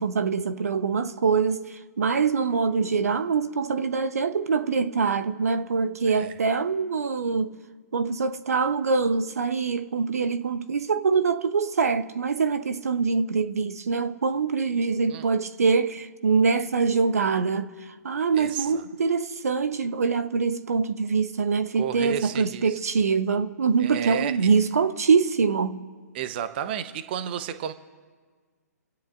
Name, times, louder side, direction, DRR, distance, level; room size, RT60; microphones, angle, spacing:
voice 1, 0.0-7.5 7.9-25.8, right 5 dB, 60° right, 1.0 m, -24 dB
voice 2, 18.3-18.8 21.7-22.8 23.8-24.4 26.1-27.7, right 9 dB, 35° right, 1.0 m, -32 dB
27.5 x 16.5 x 2.6 m
figure-of-eight pair, 125°, 9 cm